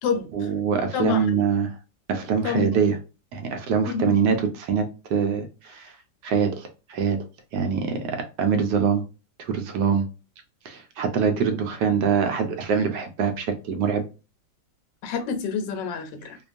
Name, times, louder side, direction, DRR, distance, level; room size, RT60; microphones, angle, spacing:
voice 1, 0.3-1.8 2.1-3.0 3.3-5.9 6.2-7.3 7.5-9.1 9.4-10.1 10.6-14.0, right 6 dB, 75° right, 1.1 m, -24 dB
voice 2, 0.9-1.5 2.4-2.7 3.9-4.1 15.0-16.4, left 6 dB, 80° left, 1.2 m, -27 dB
2.9 x 2.2 x 2.5 m
omnidirectional pair, 2.0 m